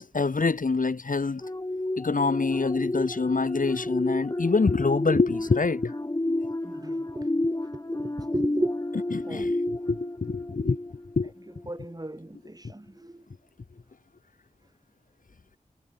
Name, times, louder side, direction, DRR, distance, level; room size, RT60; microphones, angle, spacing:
voice 1, 0.0-1.4 2.0-5.9 9.1-10.8 11.2-11.3, left 4 dB, 60° left, 1.7 m, -26 dB
sound 1, 1.4-11.3 11.7-11.9, left 1 dB, 25° left, 1.7 m, -31 dB
voice 2, 6.6-7.3 7.7-8.7 9.2-9.5 11.5-13.1, right 1 dB, 25° right, 5.6 m, -35 dB
wide cardioid pair, 50°, 15 cm